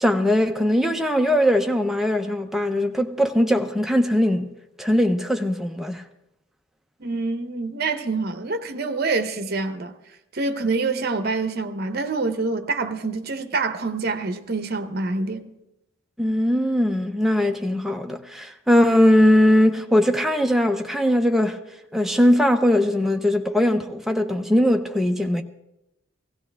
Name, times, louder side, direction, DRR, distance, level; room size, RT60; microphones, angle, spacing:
voice 1, 0.0-4.5 4.8-6.0 16.2-21.6 21.9-25.4, equal, ahead, 0.6 m, -20 dB
voice 2, 7.0-10.0 10.3-15.5, right 3 dB, 50° right, 0.8 m, -26 dB
16.5 x 16.0 x 3.4 m
head